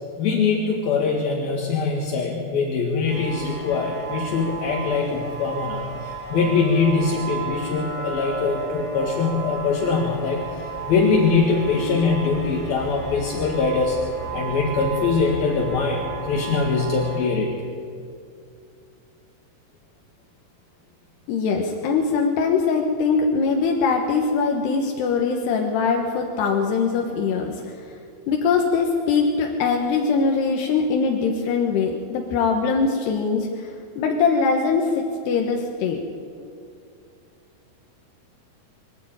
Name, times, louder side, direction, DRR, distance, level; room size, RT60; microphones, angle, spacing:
voice 1, 0.2-10.4 10.9-14.0 14.3-17.5, left 4 dB, 70° left, -2 dB, 3.6 m, -22 dB
sound 1, 3.1-17.2, right 4 dB, 25° left, 5.9 m, -34 dB
voice 2, 21.3-27.8 28.3-36.0, left 5 dB, 85° left, 1 dB, 3.5 m, -22 dB
25.0 x 12.5 x 8.9 m, 2.5 s
omnidirectional pair, 4.6 m